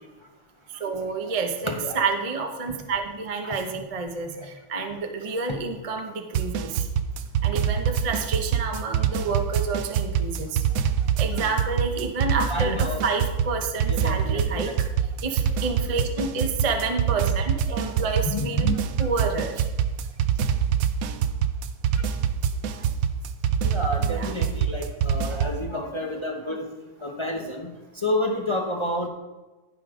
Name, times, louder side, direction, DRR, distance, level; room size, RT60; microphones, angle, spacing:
voice 1, 0.8-6.8 7.4-10.6 11.2-14.7 15.2-18.7 19.0-19.5 24.0-24.3, right 4 dB, 30° right, 4 dB, 0.6 m, -29 dB
voice 2, 1.7-2.0 3.4-3.5 4.4-4.5 12.5-13.0 13.9-14.7 18.2-18.8 22.8-22.9 23.6-26.7 27.0-29.1, left 1 dB, 40° left, 0 dB, 0.4 m, -30 dB
sound 1, 6.3-25.6, right 8 dB, 75° right, 0.7 m, -25 dB
15.5 x 5.2 x 3.8 m, 1.2 s
omnidirectional pair, 2.1 m